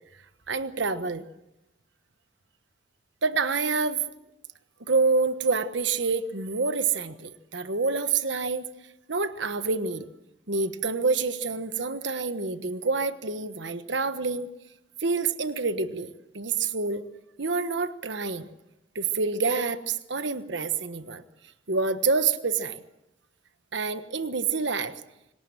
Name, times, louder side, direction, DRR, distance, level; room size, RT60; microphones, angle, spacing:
voice 1, 0.5-1.3 3.2-4.0 4.9-8.7 9.1-10.1 10.5-14.5 15.0-17.0 17.4-18.5 18.9-21.2 21.7-22.8 23.7-24.9, right 4 dB, 70° right, 11 dB, 1.3 m, -27 dB
26.0 x 18.0 x 7.7 m, 0.89 s
head